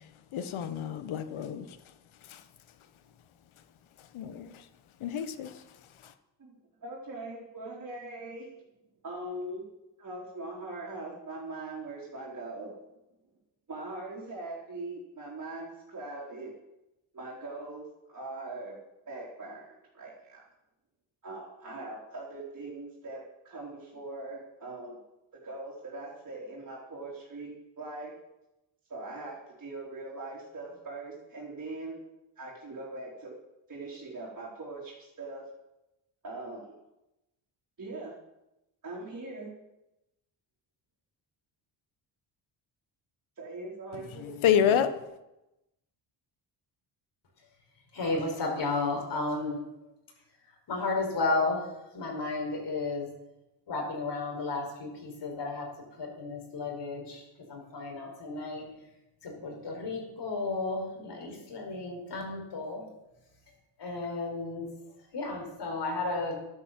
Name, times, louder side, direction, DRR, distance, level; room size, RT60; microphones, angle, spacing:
voice 1, 0.3-1.6 2.2-2.4 4.0-4.7 5.0-5.6 6.0-6.1 43.9-45.0, left 8 dB, 75° left, 1.4 m, -29 dB
voice 2, 6.8-8.5 9.0-9.6 10.0-12.8 13.7-16.5 17.1-18.8 19.1-20.4 21.2-25.0 25.3-28.2 28.9-32.0 32.4-33.3 33.7-35.5 36.2-36.7 37.8-38.1 38.8-39.5 43.4-44.3, right 2 dB, 35° right, 4.0 m, -41 dB
voice 3, 47.9-49.6 50.4-53.1 53.7-55.7 56.0-58.6 59.2-62.8 63.8-64.7 65.1-66.4, left 3 dB, 55° left, 5.1 m, -33 dB
12.5 x 9.9 x 7.6 m
cardioid pair, 115°, 49 cm